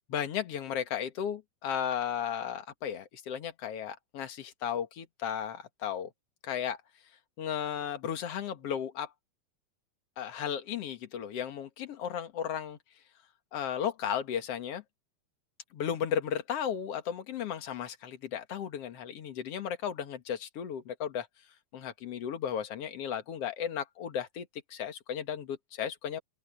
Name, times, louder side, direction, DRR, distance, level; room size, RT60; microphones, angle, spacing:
voice 1, 0.1-6.1 6.4-6.8 7.4-9.1 10.2-12.8 13.5-14.8 15.7-21.3 21.7-26.2, left 8 dB, 55° left, 2.4 m, -35 dB
open air
omnidirectional pair, 3.7 m